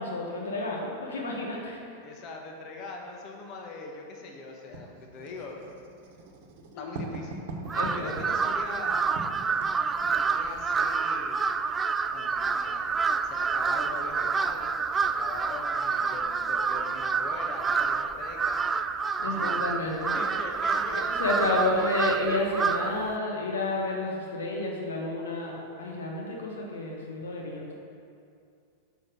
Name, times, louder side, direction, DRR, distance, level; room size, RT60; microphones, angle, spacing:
voice 1, 0.0-1.8 6.7-7.0 7.7-8.1 19.2-20.2 20.9-27.7, left 2 dB, 75° left, -1 dB, 1.1 m, -30 dB
voice 2, 2.0-5.6 6.8-7.4 7.9-9.2 10.2-11.5 12.1-13.0 13.2-18.6 19.2-21.9, left 3 dB, 45° left, 1 dB, 1.2 m, -42 dB
Writing, 4.7-10.7, right 2 dB, 55° right, 1.1 m, -41 dB
Crow, 7.7-23.1, right 5 dB, 20° right, 0.3 m, -28 dB
6.5 x 5.8 x 6.2 m, 2.4 s
figure-of-eight pair, 95°, 0 cm